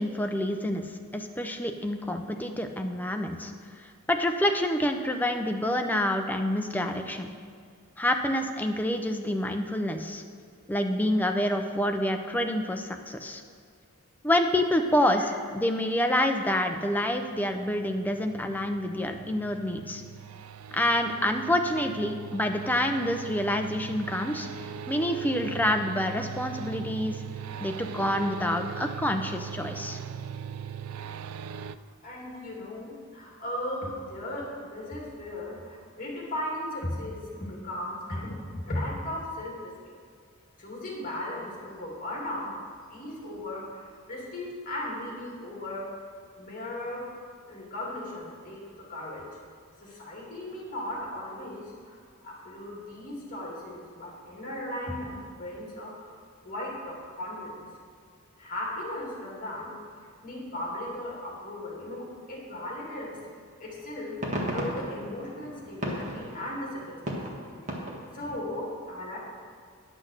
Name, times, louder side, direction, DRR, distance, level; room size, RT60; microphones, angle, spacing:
voice 1, 0.0-3.5 4.1-7.3 8.0-10.2 10.7-13.4 14.2-20.0 20.7-24.5 24.9-27.2 27.6-30.0, left 1 dB, 10° left, 5 dB, 0.6 m, -27 dB
sound 1, 16.9-31.8, right 8 dB, 80° right, 0.3 m, -40 dB
voice 2, 32.0-39.9 40.6-42.5 42.9-45.9 46.4-47.1 47.5-49.3 49.8-52.0 52.2-56.2 56.4-57.6 58.4-59.8 60.2-63.2 63.6-67.4 68.1-69.2, left 1 dB, 40° left, -3 dB, 2.6 m, -37 dB
sound 2, 63.1-63.3 63.8-68.4, equal, 35° right, 1.7 m, -36 dB
10.5 x 6.2 x 6.6 m, 2.2 s
head